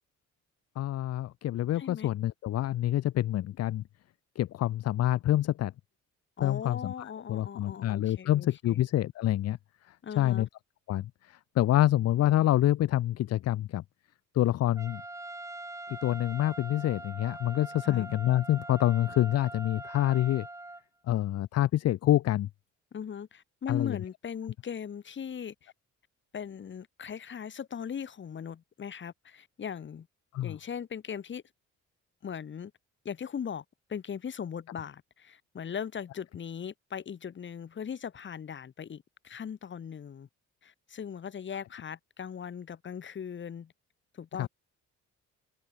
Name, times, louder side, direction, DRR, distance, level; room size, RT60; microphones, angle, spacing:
voice 1, 0.8-3.8 4.4-5.7 6.4-9.6 9.8-10.5 10.9-13.8 14.3-15.0 15.9-20.5 21.0-22.5 23.7-24.0 30.3-30.6 44.4-44.5, left 13 dB, 55° left, 0.6 m, -27 dB
voice 2, 1.8-2.1 6.4-8.9 10.0-10.5 17.8-18.1 22.9-25.7 26.3-30.1 30.4-31.4 32.2-32.7 33.0-33.6 33.9-40.3 40.6-43.7 44.1-44.5, left 7 dB, 40° left, 1.1 m, -39 dB
Trumpet, 14.8-20.8, right 2 dB, 10° right, 1.1 m, -43 dB
open air
cardioid pair, 90°, 30 cm